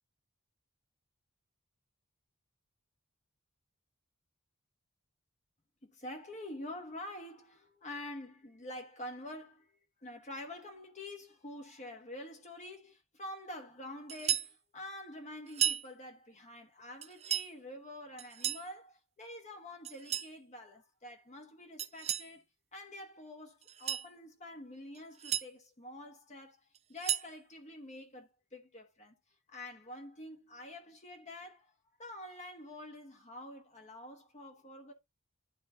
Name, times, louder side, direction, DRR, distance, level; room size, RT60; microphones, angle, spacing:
voice 1, 5.9-22.4 22.7-29.1 29.5-31.7 32.0-34.9, left 1 dB, 30° left, 1.2 m, -47 dB
sound 1, 14.1-14.5 15.5-15.9 17.0-17.5 18.2-18.7 19.8-20.3 21.8-22.3 23.6-24.1 24.9-25.5 26.7-27.3, right 10 dB, 30° right, 0.5 m, -34 dB
12.0 x 4.0 x 2.5 m
head